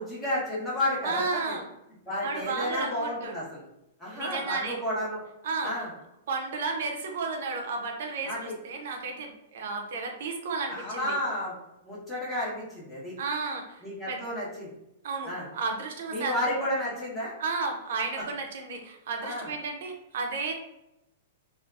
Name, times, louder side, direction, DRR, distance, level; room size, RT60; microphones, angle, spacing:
voice 1, 0.0-1.6 2.1-3.6 4.0-5.2 5.6-5.9 8.2-8.5 10.7-11.5 11.8-13.1 13.8-14.7 15.2-15.5 16.1-17.3 19.2-19.5, left 1 dB, 10° left, -7 dB, 0.8 m, -31 dB
voice 2, 1.0-1.6 2.2-3.3 4.1-4.8 5.4-5.7 6.3-11.1 13.2-14.2 15.0-16.6 17.4-20.5, right 4 dB, 65° right, 3 dB, 0.4 m, -33 dB
2.6 x 2.3 x 2.3 m, 0.88 s
hypercardioid pair, 155°, 0 cm